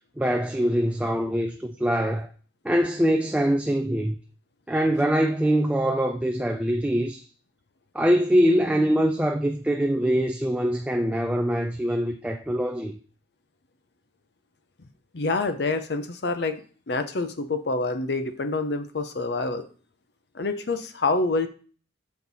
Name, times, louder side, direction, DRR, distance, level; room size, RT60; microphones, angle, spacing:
voice 1, 0.2-2.3 2.6-4.1 4.7-7.2 7.9-12.9, equal, 5° right, 0.3 m, -23 dB
voice 2, 15.1-16.6 16.9-19.7 20.3-21.5, left 3 dB, 55° left, 0.6 m, -27 dB
7.1 x 4.5 x 4.0 m
head